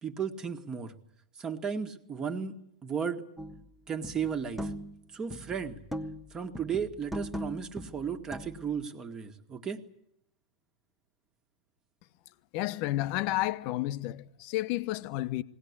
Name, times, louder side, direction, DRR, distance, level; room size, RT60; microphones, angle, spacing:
voice 1, 0.0-0.9 1.4-2.5 2.8-3.2 3.9-4.7 5.1-5.8 6.3-9.8, right 7 dB, 25° right, 1.8 m, -34 dB
sound 1, 3.4-3.7 4.0-5.0 5.3-6.3 6.6-8.8, equal, ahead, 1.4 m, -39 dB
voice 2, 12.5-15.4, left 16 dB, 45° left, 0.9 m, -31 dB
20.5 x 18.0 x 9.8 m
hypercardioid pair, 100°, 3 cm